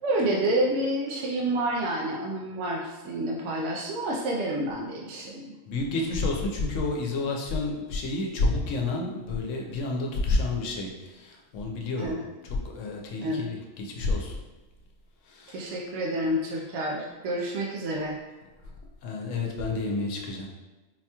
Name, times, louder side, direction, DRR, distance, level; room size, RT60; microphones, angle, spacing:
voice 1, 0.0-5.5 12.0-12.2 13.2-13.5 15.5-18.1, right 1 dB, 70° right, -2 dB, 0.9 m, -29 dB
voice 2, 5.7-12.1 12.4-14.4 15.3-15.7 19.0-20.5, left 3 dB, 75° left, 0 dB, 1.0 m, -29 dB
4.2 x 2.8 x 2.3 m, 1.2 s
omnidirectional pair, 1.3 m